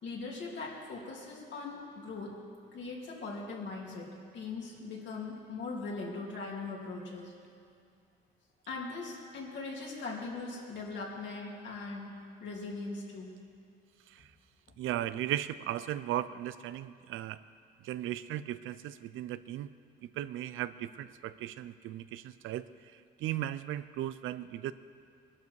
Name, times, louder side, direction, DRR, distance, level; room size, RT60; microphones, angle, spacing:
voice 1, 0.0-2.4 2.7-7.3 8.7-12.1 12.4-13.3, left 3 dB, 65° left, -3 dB, 3.2 m, -40 dB
voice 2, 14.8-17.4 17.8-19.7 20.2-22.7 23.2-24.7, right 13 dB, 85° right, 14 dB, 0.6 m, -36 dB
20.5 x 12.0 x 4.8 m, 2.4 s
cardioid pair, 90°, 20 cm